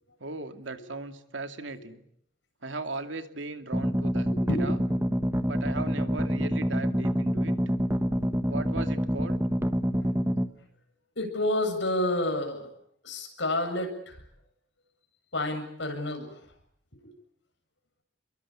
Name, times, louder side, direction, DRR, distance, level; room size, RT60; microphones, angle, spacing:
voice 1, 0.2-2.0 2.6-4.3 4.6-4.8 5.4-7.5 8.5-9.4, right 3 dB, 80° right, 7 dB, 2.5 m, -37 dB
sound 1, 3.7-10.5, equal, 15° right, 1.3 m, -27 dB
voice 2, 4.3-4.7 8.1-8.2 11.2-12.7 13.0-14.2 15.3-16.4 17.0-17.1, left 1 dB, 70° left, 4 dB, 7.9 m, -29 dB
30.0 x 22.5 x 8.7 m, 0.69 s
head